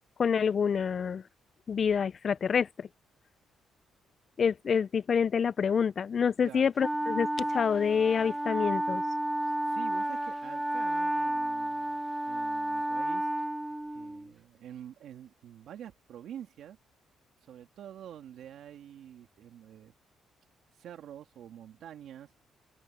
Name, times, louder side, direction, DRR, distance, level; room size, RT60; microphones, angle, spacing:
voice 1, 0.2-1.2 1.7-2.9 4.4-9.0, left 6 dB, 50° left, 0.3 m, -27 dB
voice 2, 6.4-6.7 9.4-13.3 13.9-16.8 17.4-19.9 20.7-22.3, right 10 dB, 75° right, 2.2 m, -47 dB
Wind instrument woodwind instrument, 6.8-14.3, right 1 dB, 10° right, 1.2 m, -31 dB
cardioid pair, 90°, 0 cm